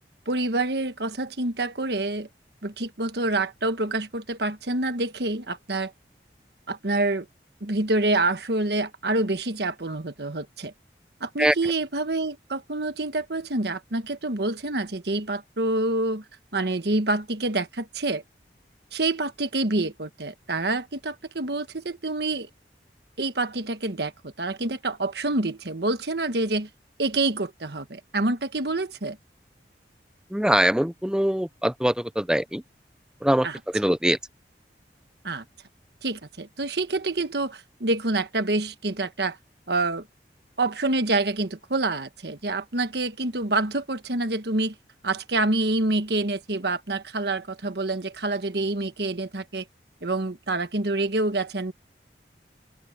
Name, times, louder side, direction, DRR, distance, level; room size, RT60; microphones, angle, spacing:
voice 1, 0.3-2.3 2.6-5.9 6.7-7.3 7.6-10.7 11.2-16.2 16.5-18.2 18.9-22.5 23.2-26.7 27.0-29.2 33.4-33.6 35.2-35.4 36.0-39.4 39.7-40.0 40.6-44.7 45.0-49.6 50.0-51.7, right 2 dB, 70° right, 1.4 m, -27 dB
voice 2, 30.3-32.6 33.2-34.2, equal, 5° right, 0.6 m, -23 dB
open air
head